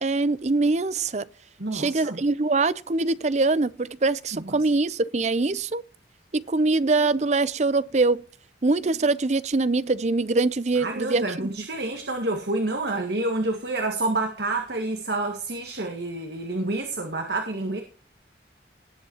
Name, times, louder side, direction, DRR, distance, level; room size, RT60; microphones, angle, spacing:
voice 1, 0.0-1.2 1.7-5.8 6.3-8.2 8.6-11.2, right 3 dB, 40° right, 0.6 m, -23 dB
voice 2, 1.6-2.2 4.3-4.7 10.8-17.8, right 2 dB, 65° right, 2.0 m, -28 dB
19.5 x 8.2 x 3.0 m
head